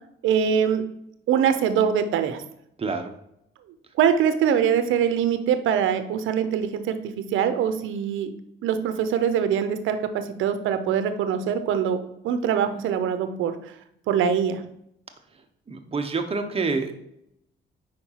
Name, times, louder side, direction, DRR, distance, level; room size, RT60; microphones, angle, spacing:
voice 1, 0.2-0.8 1.3-2.4 4.0-8.3 8.6-13.6 14.1-14.6, right 8 dB, 80° right, 10 dB, 0.6 m, -23 dB
voice 2, 2.8-3.1 15.7-16.9, right 4 dB, 30° right, 5 dB, 0.9 m, -27 dB
4.9 x 4.3 x 5.6 m, 0.77 s
cardioid pair, 90°, 20 cm